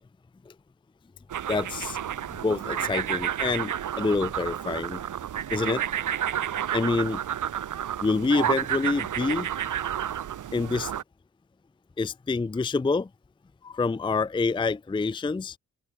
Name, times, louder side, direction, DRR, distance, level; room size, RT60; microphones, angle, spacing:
sound 1, 1.3-11.0, right 10 dB, 65° right, 0.8 m, -30 dB
voice 1, 1.5-2.0 2.4-5.0 5.5-5.8 6.7-7.2 8.0-9.5 10.5-10.9 12.0-13.1 13.6-15.6, left 4 dB, 15° left, 0.5 m, -27 dB
open air
cardioid pair, 85°, 34 cm